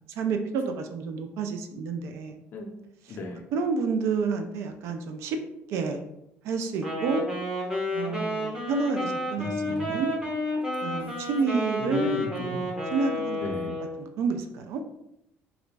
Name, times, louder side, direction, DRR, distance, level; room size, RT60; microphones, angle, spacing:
voice 1, 0.2-2.4 3.5-5.4 5.7-6.0 6.4-7.3 7.9-10.2 10.8-12.2 12.9-13.4 14.0-14.8, right 4 dB, 70° right, 6 dB, 0.3 m, -29 dB
voice 2, 3.1-3.4 9.4-10.0 11.8-12.7 13.4-13.8, left 1 dB, 45° left, 3 dB, 0.5 m, -36 dB
Wind instrument woodwind instrument, 6.8-14.0, left 1 dB, 15° right, 0.7 m, -31 dB
2.4 x 2.0 x 3.2 m, 0.82 s
cardioid pair, 145°, 5 cm